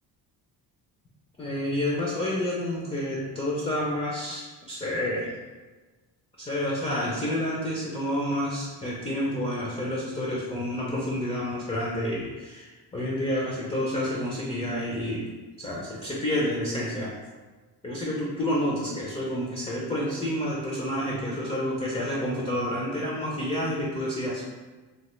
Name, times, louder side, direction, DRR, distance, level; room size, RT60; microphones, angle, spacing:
voice 1, 1.4-5.3 6.4-15.2 15.6-17.2 17.8-24.4, left 1 dB, 15° left, -5 dB, 0.3 m, -29 dB
3.1 x 2.1 x 3.0 m, 1.3 s
cardioid pair, 140°, 41 cm